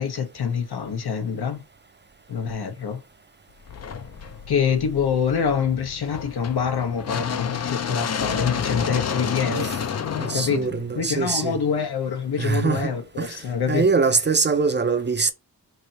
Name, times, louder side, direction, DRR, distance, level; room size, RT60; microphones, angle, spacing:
voice 1, 0.0-1.6 2.3-3.0 4.5-9.8 10.3-10.7 11.0-13.8, left 7 dB, 80° left, 1.0 m, -25 dB
sound 1, 3.7-11.7, left 7 dB, 45° left, 0.4 m, -30 dB
voice 2, 9.4-9.8 10.2-11.6 12.4-13.4 13.7-15.3, right 4 dB, 30° right, 0.4 m, -23 dB
3.4 x 2.7 x 4.1 m
wide cardioid pair, 105°, 38 cm